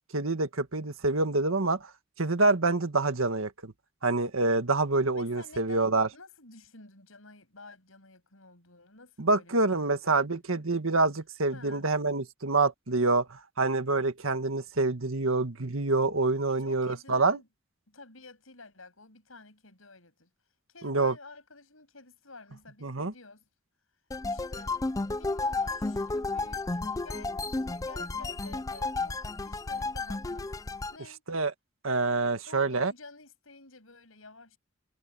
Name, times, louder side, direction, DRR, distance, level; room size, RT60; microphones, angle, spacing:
voice 1, 0.1-1.8 2.2-3.7 4.0-6.1 9.2-17.4 20.8-21.1 22.8-23.1 31.3-31.5 31.8-32.9, right 3 dB, 90° right, 1.7 m, -26 dB
voice 2, 5.1-10.7 11.5-11.9 16.5-17.5 17.9-20.3 20.7-23.4 24.3-24.8 25.2-30.6 30.9-31.2 32.5-34.6, left 3 dB, 85° left, 7.3 m, -51 dB
sound 1, 24.1-31.0, left 3 dB, 15° left, 0.4 m, -32 dB
head